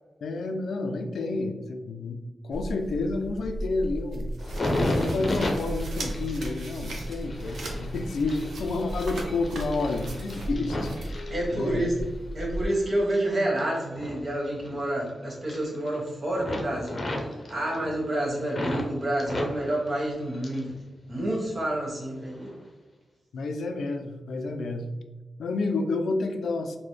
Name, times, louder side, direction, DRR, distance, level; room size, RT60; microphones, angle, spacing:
voice 1, 0.2-4.3 4.7-11.9 23.3-24.9 25.4-26.8, left 3 dB, 85° left, 6 dB, 0.3 m, -30 dB
sound 1, 2.5-12.7, right 1 dB, 85° right, 0.6 m, -35 dB
sound 2, 4.4-12.0 12.5-15.1 15.3-16.1 16.4-18.9 19.2-20.8 21.0-21.8 22.3-22.5, left 1 dB, 45° left, 0.6 m, -34 dB
voice 2, 11.3-11.9 12.3-17.0 17.5-20.7 21.1-22.5, right 1 dB, 55° right, -4 dB, 1.4 m, -28 dB
3.9 x 2.1 x 3.1 m, 1.2 s
cardioid pair, 75°, 0 cm